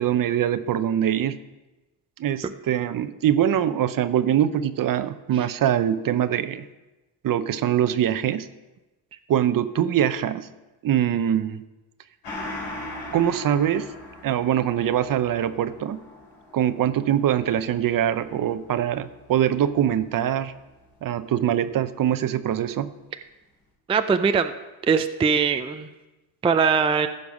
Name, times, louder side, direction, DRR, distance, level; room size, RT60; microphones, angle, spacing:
voice 1, 0.0-1.4 2.2-6.7 7.2-8.5 9.3-10.5 10.8-11.7 13.1-13.9 14.2-16.0 16.5-20.5 21.0-22.9, right 10 dB, 45° right, 13 dB, 0.7 m, -23 dB
Gong, 12.2-21.2 21.5-21.6, left 1 dB, 90° left, 4.4 m, -41 dB
voice 2, 23.9-24.5 24.9-25.9 26.4-27.1, right 6 dB, 15° right, 8 dB, 0.4 m, -21 dB
15.0 x 5.4 x 5.2 m, 1.1 s
supercardioid pair, 85°, 46 cm